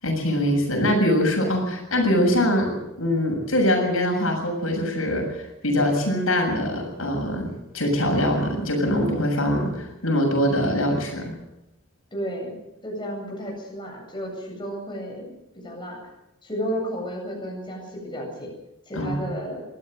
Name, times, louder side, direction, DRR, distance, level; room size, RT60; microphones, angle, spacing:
voice 1, 0.0-7.5 7.7-11.3 18.9-19.3, equal, 80° left, 2 dB, 7.2 m, -23 dB
voice 2, 12.1-12.6 12.8-16.0 16.4-18.5 18.9-19.6, equal, 20° left, -1 dB, 8.0 m, -32 dB
23.5 x 16.0 x 7.8 m, 0.91 s
head